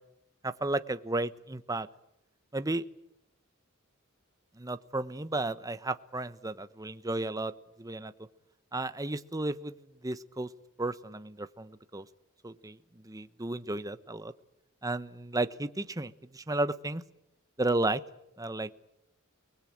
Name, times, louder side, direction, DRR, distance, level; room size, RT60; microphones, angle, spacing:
voice 1, 0.4-1.9 2.5-2.8 4.6-7.5 7.8-8.1 8.7-9.8 10.0-10.5 10.8-12.0 12.4-12.8 13.0-14.3 14.8-17.0 17.6-18.0 18.4-18.7, right 2 dB, 15° right, 12 dB, 1.0 m, -33 dB
30.0 x 20.5 x 8.8 m, 0.83 s
head